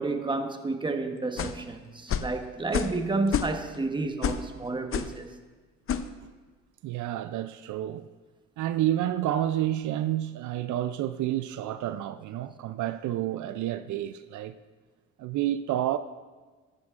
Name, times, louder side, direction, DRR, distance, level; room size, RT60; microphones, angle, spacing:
voice 1, 0.0-5.3, right 3 dB, 15° right, 1.0 m, -30 dB
sound 1, 1.4-1.6 2.1-2.3 2.7-3.0 3.3-3.8 4.2-4.5 4.9-5.2 5.9-6.1, left 8 dB, 45° left, 0.6 m, -29 dB
voice 2, 6.8-8.1 8.6-14.5 15.2-16.0, right 12 dB, 75° right, 0.5 m, -29 dB
15.0 x 12.0 x 2.5 m
cardioid pair, 90°, 30 cm